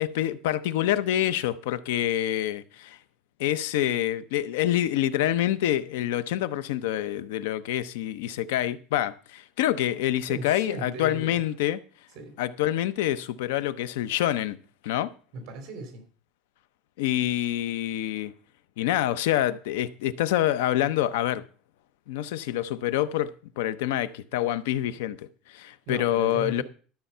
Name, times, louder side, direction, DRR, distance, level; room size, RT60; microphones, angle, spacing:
voice 1, 0.0-3.0 3.4-11.8 12.4-14.6 14.8-15.1 17.0-18.3 18.8-21.4 22.1-26.6, left 12 dB, 85° left, 0.7 m, -26 dB
voice 2, 10.3-11.5 12.1-12.3 15.3-16.1 25.9-26.6, right 3 dB, 45° right, 3.2 m, -37 dB
13.0 x 7.0 x 5.6 m
cardioid pair, 170°, 0 cm